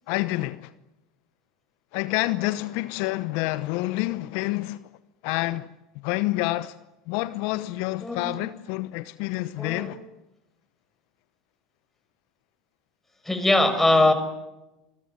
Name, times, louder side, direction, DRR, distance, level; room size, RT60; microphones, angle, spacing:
voice 1, 0.1-0.7 1.9-4.8 5.2-5.7 6.0-6.7 7.1-10.0, left 18 dB, 60° left, 1.0 m, -28 dB
voice 2, 9.6-9.9 13.2-14.1, left 2 dB, 10° left, 6.2 m, -21 dB
27.5 x 21.5 x 9.7 m
hypercardioid pair, 80°, 3 cm